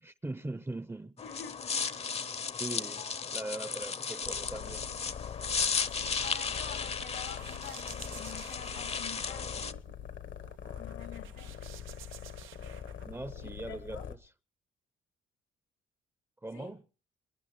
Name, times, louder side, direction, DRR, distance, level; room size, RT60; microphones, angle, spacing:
voice 1, 0.0-1.2 2.6-3.0 3.3-4.9 13.0-14.0 16.4-16.8, right 2 dB, 10° right, 0.7 m, -40 dB
voice 2, 1.2-2.1 3.0-3.1 5.8-9.6 10.8-11.6 13.4-14.1 16.5-16.7, left 9 dB, 90° left, 2.9 m, -48 dB
sound 1, 1.2-9.7, left 5 dB, 30° left, 0.7 m, -35 dB
sound 2, 4.2-14.2, left 9 dB, 70° left, 1.2 m, -44 dB
sound 3, 5.9-13.8, right 11 dB, 85° right, 0.7 m, -54 dB
28.5 x 10.5 x 3.2 m
cardioid pair, 90°, 20 cm